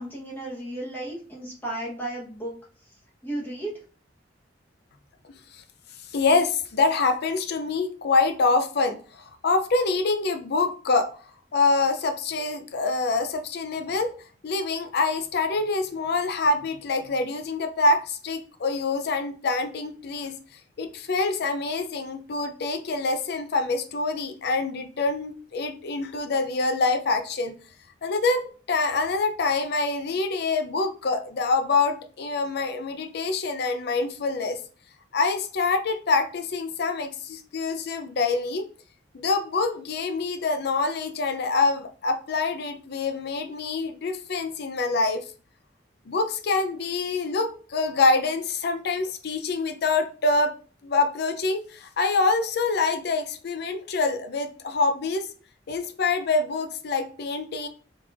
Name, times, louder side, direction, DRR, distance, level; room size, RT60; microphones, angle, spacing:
voice 1, 0.0-2.5 3.2-3.8, right 1 dB, 10° left, -5 dB, 1.0 m, -34 dB
voice 2, 6.1-11.1 11.5-14.1 14.4-20.3 20.8-27.5 28.0-34.6 35.1-38.7 39.1-45.2 46.1-50.6 50.8-55.3 55.7-57.7, left 3 dB, 60° left, 7 dB, 0.5 m, -25 dB
3.5 x 3.2 x 2.4 m, 0.40 s
head